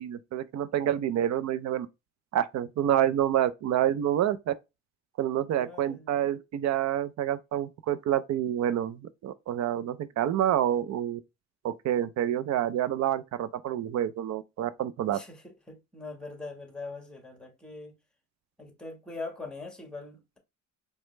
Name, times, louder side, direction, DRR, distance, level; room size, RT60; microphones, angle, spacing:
voice 1, 0.0-1.9 2.3-4.5 5.2-11.2 11.6-15.2, right 11 dB, 65° right, 0.5 m, -28 dB
voice 2, 5.5-6.3 15.1-17.9 18.6-20.4, left 3 dB, 5° left, 1.4 m, -42 dB
4.9 x 2.1 x 3.1 m
cardioid pair, 90°, 30 cm